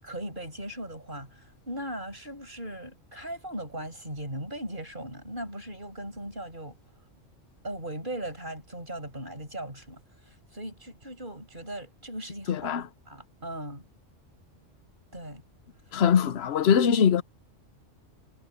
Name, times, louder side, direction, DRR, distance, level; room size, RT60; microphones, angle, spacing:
voice 1, 0.0-6.8 7.6-12.8 13.1-13.9 15.1-15.4, right 1 dB, 40° right, 8.1 m, -38 dB
voice 2, 12.5-12.8 15.9-17.2, left 7 dB, 60° left, 1.0 m, -22 dB
omnidirectional pair, 1.3 m